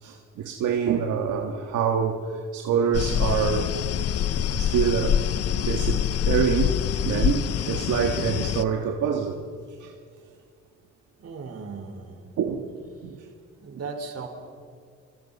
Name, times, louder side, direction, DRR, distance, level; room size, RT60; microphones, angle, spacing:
voice 1, 0.0-2.3 2.5-3.7 4.5-5.2 5.6-6.7 7.0-9.4 9.8-9.9 12.4-12.7 13.0-13.2, right 7 dB, 80° right, 1.7 m, -26 dB
sound 1, 2.9-8.6, left 9 dB, 55° left, 0.7 m, -25 dB
voice 2, 11.2-12.3 13.6-14.3, right 4 dB, 55° right, 4.4 m, -37 dB
28.5 x 26.0 x 5.5 m
cardioid pair, 90°, 30 cm